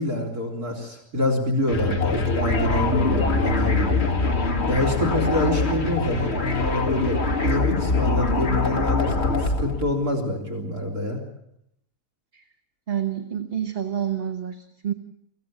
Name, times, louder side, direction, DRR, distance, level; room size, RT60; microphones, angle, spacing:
voice 1, 0.0-4.0 4.7-11.2, left 1 dB, 70° right, 5 dB, 4.3 m, -26 dB
sound 1, 1.7-9.9, left 3 dB, 45° left, 2.1 m, -23 dB
voice 2, 12.9-14.9, right 9 dB, 40° right, 7 dB, 1.2 m, -28 dB
24.0 x 16.0 x 8.7 m, 0.76 s
omnidirectional pair, 1.6 m